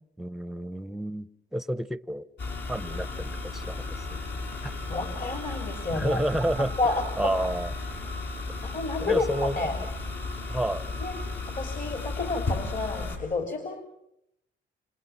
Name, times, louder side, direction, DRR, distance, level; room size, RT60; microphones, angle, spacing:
voice 1, 0.2-2.3 2.7-4.2 4.6-4.7 5.9-6.8 7.2-7.7 9.0-9.6 10.5-10.9, right 1 dB, ahead, 15 dB, 0.9 m, -30 dB
sound 1, 2.4-13.2, left 3 dB, 60° left, 6.7 m, -34 dB
voice 2, 4.9-6.2 6.8-7.4 8.6-9.8 11.0-11.2 11.6-13.8, left 3 dB, 45° left, 5 dB, 3.1 m, -30 dB
28.5 x 26.5 x 5.9 m, 0.81 s
cardioid pair, 90°, 20 cm